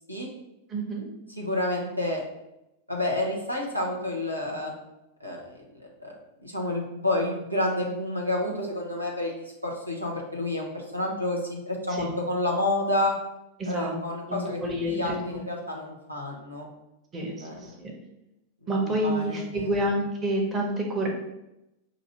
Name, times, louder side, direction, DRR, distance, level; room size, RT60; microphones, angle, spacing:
voice 1, 0.7-1.0 11.9-12.2 13.6-13.9 14.3-15.4 17.1-17.5 17.8-17.9 18.7-21.1, right 1 dB, 25° right, 0 dB, 1.0 m, -28 dB
voice 2, 1.4-2.2 2.9-4.7 5.2-5.6 6.0-6.1 6.4-13.1 13.6-14.6 14.8-16.7 17.4-17.7 18.6-19.7, left 1 dB, 90° right, -2 dB, 0.9 m, -29 dB
5.9 x 2.6 x 2.9 m, 0.89 s
figure-of-eight pair, 90°, 0 cm